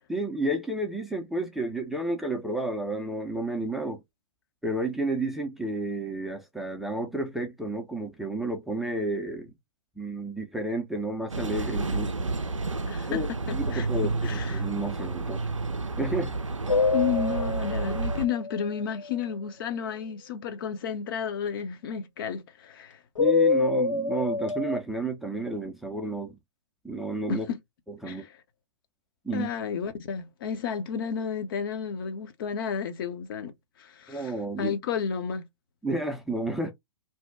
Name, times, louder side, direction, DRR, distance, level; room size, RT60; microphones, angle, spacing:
voice 1, 0.1-4.0 4.6-9.5 10.0-12.3 13.1-13.3 13.5-15.4 16.0-16.3 23.2-26.4 26.8-27.5 27.9-28.2 29.2-29.5 34.1-34.7 35.8-36.7, right 1 dB, ahead, 0.5 m, -31 dB
sound 1, 11.3-18.3, right 3 dB, 90° right, 0.4 m, -30 dB
voice 2, 12.9-13.2 13.7-13.9 14.2-14.7 16.9-23.0 27.3-27.6 28.1-28.3 29.3-33.5 33.8-35.4, left 7 dB, 45° left, 0.6 m, -32 dB
sound 2, 16.7-19.1 23.2-24.8, left 3 dB, 85° left, 0.5 m, -26 dB
2.7 x 2.1 x 3.4 m
figure-of-eight pair, 115°, 16 cm